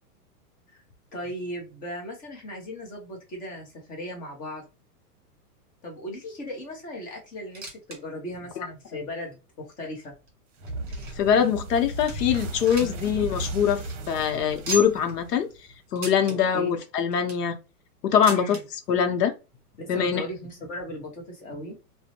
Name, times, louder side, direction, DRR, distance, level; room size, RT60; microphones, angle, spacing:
voice 1, 1.1-4.6 5.8-10.1 12.8-13.0 16.2-16.7 18.3-18.6 19.8-21.8, equal, 20° left, 0.7 m, -37 dB
sound 1, 7.4-8.0 8.3-8.4 9.0-9.1 9.9-11.3 11.7-11.8 12.1-13.1 13.4-13.5 13.8-13.9 14.6-15.1 15.9-16.4 17.0-17.5 18.2-18.6 19.6-19.7 19.9-20.0 20.8-20.9, right 2 dB, 25° right, 1.5 m, -36 dB
sound 2, 10.6-15.7, right 2 dB, 50° right, 0.8 m, -35 dB
voice 2, 11.2-15.5 15.9-17.6 18.0-18.6 18.9-19.3 19.9-20.2, left 8 dB, 90° left, 0.7 m, -23 dB
2.5 x 2.1 x 2.8 m
hypercardioid pair, 140°, 47 cm